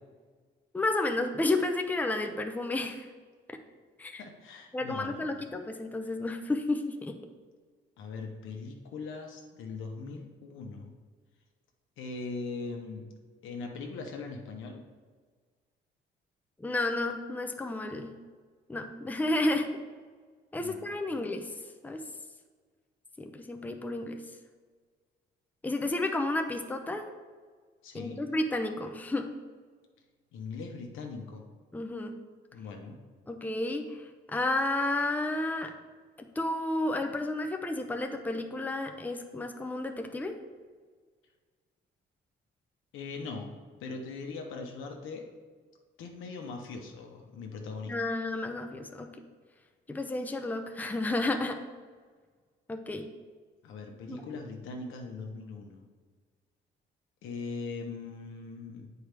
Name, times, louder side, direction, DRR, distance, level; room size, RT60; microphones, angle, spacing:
voice 1, 0.7-3.1 4.0-4.2 4.7-7.2 16.6-18.1 18.7-19.7 20.5-21.5 21.8-22.0 23.2-24.2 25.6-27.1 27.9-29.3 31.7-32.1 33.3-35.7 36.2-40.4 47.9-49.1 49.9-51.6 52.7-53.1 54.1-54.2, left 2 dB, 10° left, 5 dB, 0.6 m, -31 dB
voice 2, 4.2-5.3 8.0-10.9 12.0-13.1 13.4-14.8 20.6-20.9 21.1-21.2 27.8-28.2 30.3-31.5 32.5-33.0 42.9-43.5 43.8-45.2 46.0-47.9 53.6-55.8 57.2-58.9, left 4 dB, 85° left, 3 dB, 1.0 m, -40 dB
8.1 x 4.7 x 3.4 m, 1.5 s
cardioid pair, 90°, 20 cm